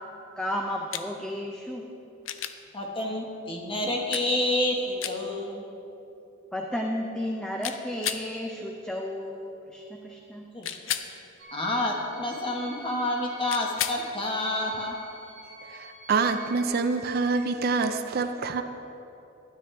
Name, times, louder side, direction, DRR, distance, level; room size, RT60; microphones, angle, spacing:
voice 1, 0.4-1.9 6.5-10.5, left 1 dB, 5° left, 1 dB, 0.5 m, -33 dB
sound 1, 0.9-1.1 2.3-2.6 4.1-4.3 5.0-5.2 7.6-8.3 10.6-11.1 13.5-14.0 16.3-16.4, left 10 dB, 80° left, 0.5 m, -32 dB
voice 2, 2.7-5.6 10.5-10.8 11.1-11.2 11.5-14.9, left 1 dB, 25° left, 0 dB, 1.2 m, -29 dB
sound 2, 11.4-16.7, equal, 85° right, 1.8 m, -48 dB
voice 3, 15.7-18.6, right 4 dB, 50° right, 8 dB, 0.4 m, -26 dB
13.0 x 9.7 x 3.3 m, 3.0 s
head